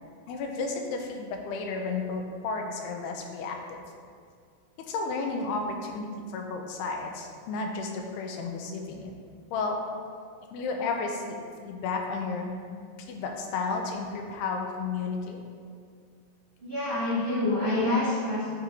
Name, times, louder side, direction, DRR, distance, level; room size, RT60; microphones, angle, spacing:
voice 1, 0.3-3.8 4.9-9.1 9.5-9.8 10.5-11.4 11.6-12.5 13.0-15.4, left 4 dB, 85° left, 2 dB, 2.7 m, -32 dB
voice 2, 16.6-18.5, left 2 dB, 55° right, -13 dB, 0.7 m, -27 dB
8.2 x 4.0 x 4.4 m, 2.1 s
omnidirectional pair, 4.5 m